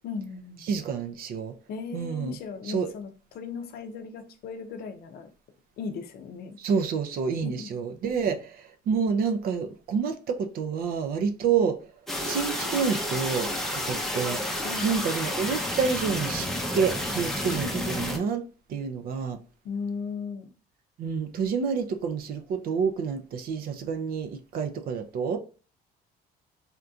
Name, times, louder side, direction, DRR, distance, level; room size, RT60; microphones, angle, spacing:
voice 1, 0.0-0.6 1.7-5.3 5.8-6.6 7.4-7.7 14.6-14.9 19.6-20.5, left 5 dB, 65° left, 0.5 m, -37 dB
voice 2, 0.7-1.5 1.9-2.4 2.7-2.9 6.6-11.8 12.2-14.4 14.8-16.5 16.7-18.4 18.7-19.4 21.0-25.4, right 6 dB, 60° right, 0.5 m, -28 dB
sound 1, 12.1-18.2, left 1 dB, ahead, 0.6 m, -30 dB
3.6 x 2.7 x 2.3 m
cardioid pair, 110°, 17 cm